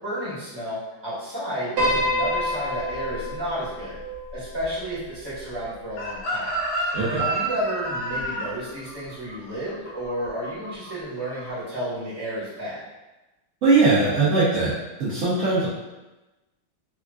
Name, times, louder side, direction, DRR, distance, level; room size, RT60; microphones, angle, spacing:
voice 1, 0.0-3.9 4.3-6.5 7.2-12.8, equal, 15° right, -11 dB, 0.9 m, -31 dB
Piano, 1.8-6.2, equal, 60° right, 1.2 m, -28 dB
Chicken rooster, 6.0-10.9 11.2-11.5, right 2 dB, 75° left, 1.0 m, -29 dB
voice 2, 13.6-14.7 15.0-15.7, right 3 dB, 80° right, -10 dB, 0.7 m, -20 dB
3.6 x 2.4 x 2.3 m, 1.1 s
omnidirectional pair, 2.3 m